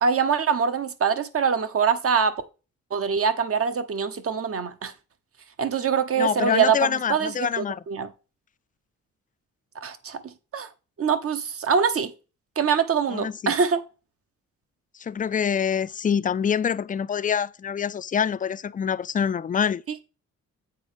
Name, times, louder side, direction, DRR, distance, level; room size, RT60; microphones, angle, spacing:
voice 1, 0.0-2.4 2.9-4.9 5.6-8.1 9.8-10.7 11.0-12.1 12.6-13.8, right 6 dB, 50° right, 1.1 m, -24 dB
voice 2, 6.2-7.8 13.1-13.5 15.0-19.8, left 7 dB, 30° left, 0.4 m, -25 dB
8.0 x 4.5 x 5.1 m
cardioid pair, 100°, 30 cm